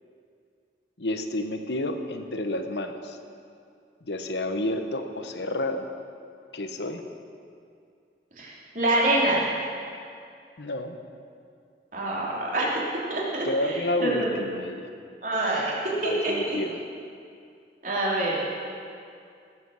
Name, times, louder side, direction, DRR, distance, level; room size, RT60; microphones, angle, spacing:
voice 1, 1.0-3.2 4.0-5.9 6.5-7.1 10.6-11.0 13.4-14.9 16.0-16.8, left 1 dB, 80° left, 7 dB, 1.0 m, -30 dB
voice 2, 8.4-9.4 11.9-12.8 13.1-14.3 15.2-15.8 16.0-16.6 17.8-18.4, right 1 dB, 45° right, -5 dB, 3.1 m, -26 dB
18.0 x 7.7 x 6.4 m, 2.4 s
head